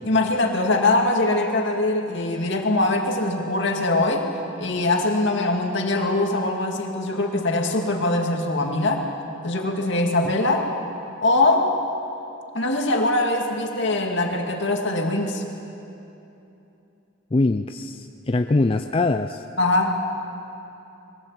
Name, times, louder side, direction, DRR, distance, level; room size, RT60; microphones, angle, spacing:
voice 1, 0.1-4.3 4.6-9.1 9.4-10.7 11.2-11.8 12.5-15.4 19.6-20.0, left 2 dB, 65° left, 2 dB, 2.3 m, -22 dB
voice 2, 17.3-19.4, left 2 dB, 30° left, 7 dB, 0.4 m, -22 dB
22.0 x 16.5 x 8.2 m, 2.9 s
head